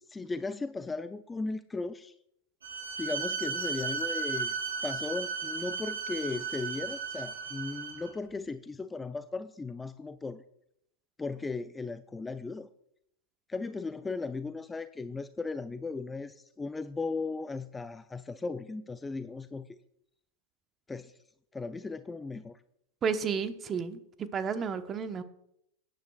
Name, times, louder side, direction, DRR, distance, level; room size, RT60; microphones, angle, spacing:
voice 1, 0.1-2.1 3.0-4.5 4.8-10.4 11.2-12.7 13.5-19.8 20.9-21.1 21.5-22.6, left 3 dB, 15° left, 12 dB, 0.4 m, -36 dB
Bowed string instrument, 2.6-8.1, right 5 dB, 85° right, 4.7 m, -35 dB
voice 2, 23.0-24.0 24.3-25.2, right 6 dB, 30° right, 10 dB, 1.0 m, -31 dB
17.5 x 10.5 x 2.4 m, 0.76 s
hypercardioid pair, 100°, 0 cm